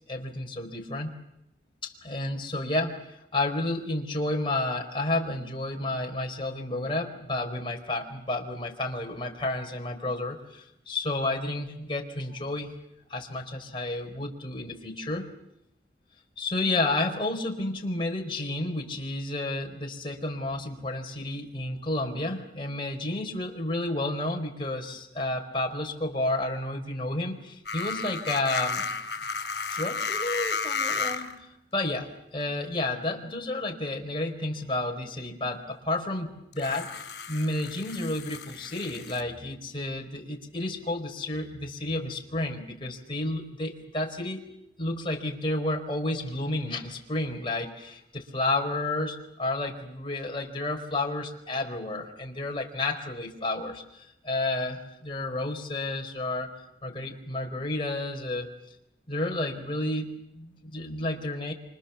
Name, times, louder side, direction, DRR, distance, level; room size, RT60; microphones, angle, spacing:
voice 1, 0.1-1.2 1.8-12.7 13.1-15.3 16.4-28.9 29.7-44.4 44.8-56.5 56.8-58.5 59.1-61.5, left 2 dB, 30° left, 1 dB, 4.6 m, -31 dB
sound 1, 27.7-31.4 32.4-32.5 36.5-39.2, left 4 dB, 65° left, 5.7 m, -33 dB
29.0 x 26.5 x 7.2 m, 0.81 s
head